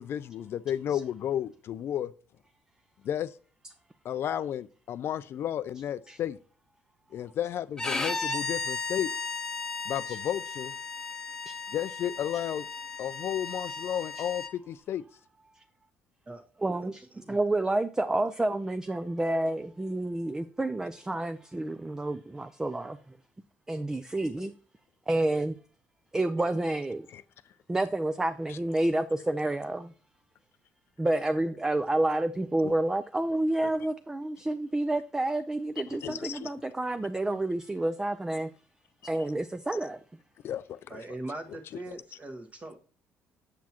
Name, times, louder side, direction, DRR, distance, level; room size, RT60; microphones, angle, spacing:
voice 1, 0.0-2.1 3.0-3.3 4.0-6.4 7.1-9.1 9.9-10.7 11.7-12.7 13.0-15.0 24.4-24.5 27.1-27.2 28.5-28.6 32.6-32.7 33.6-33.7 36.0-36.5 40.4-41.0, left 10 dB, 55° left, 0.4 m, -33 dB
Bowed string instrument, 7.8-14.5, left 3 dB, 15° left, 0.9 m, -35 dB
voice 2, 16.6-23.0 23.7-24.5 25.1-25.6 26.1-27.1 27.7-29.9 31.0-38.5 39.0-40.0, right 2 dB, 10° right, 0.4 m, -29 dB
voice 3, 40.9-42.8, right 2 dB, 25° right, 1.3 m, -41 dB
7.4 x 7.2 x 2.9 m
cardioid pair, 115°, 5 cm